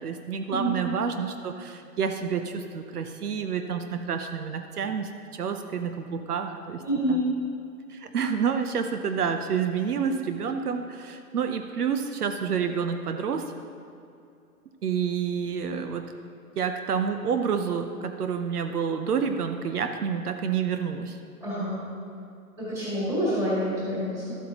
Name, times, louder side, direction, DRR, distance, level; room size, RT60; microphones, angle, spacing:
voice 1, 0.0-6.8 7.1-7.2 7.9-13.4 14.8-16.0 16.6-21.2, right 6 dB, 75° right, 6 dB, 0.8 m, -29 dB
voice 2, 6.8-7.2 21.4-21.8 22.6-24.4, equal, 5° right, -10 dB, 2.0 m, -27 dB
12.5 x 8.2 x 2.9 m, 2.6 s
hypercardioid pair, 165°, 46 cm